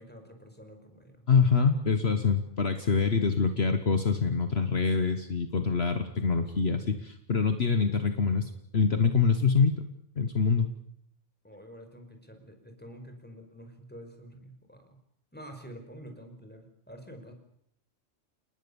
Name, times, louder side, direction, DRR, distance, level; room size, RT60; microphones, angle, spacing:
voice 1, 0.0-1.3 11.4-15.0 15.3-17.3, equal, 10° left, 5 dB, 5.3 m, -48 dB
voice 2, 1.3-9.7 10.2-10.7, left 5 dB, 55° left, 8 dB, 1.6 m, -25 dB
30.0 x 19.0 x 7.1 m, 0.68 s
omnidirectional pair, 1.3 m